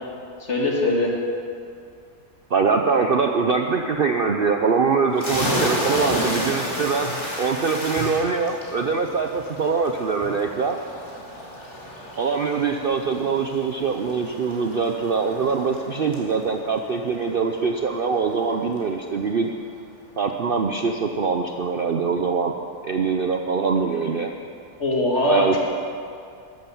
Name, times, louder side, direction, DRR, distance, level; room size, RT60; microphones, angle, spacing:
voice 1, 0.4-1.1 24.8-25.6, left 2 dB, 50° left, -1 dB, 2.4 m, -21 dB
voice 2, 2.5-7.1 7.4-10.8 12.2-19.5 20.2-22.5 22.8-24.3 25.2-25.6, right 5 dB, 50° right, 4 dB, 0.7 m, -23 dB
sound 1, 5.1-18.5, equal, 15° left, 3.1 m, -32 dB
13.0 x 11.5 x 7.1 m, 2.4 s
omnidirectional pair, 1.6 m